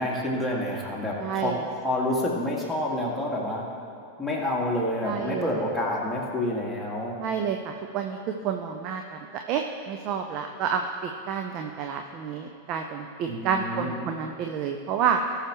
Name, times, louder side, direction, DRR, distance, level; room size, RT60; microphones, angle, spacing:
voice 1, 0.0-3.6 4.2-7.2 13.3-14.0, left 1 dB, 5° left, -4 dB, 2.1 m, -28 dB
voice 2, 1.2-1.6 5.0-5.7 7.2-9.2 9.5-15.2, right 7 dB, 40° right, 4 dB, 0.6 m, -29 dB
18.0 x 6.6 x 3.1 m, 2.7 s
figure-of-eight pair, 90°, 0 cm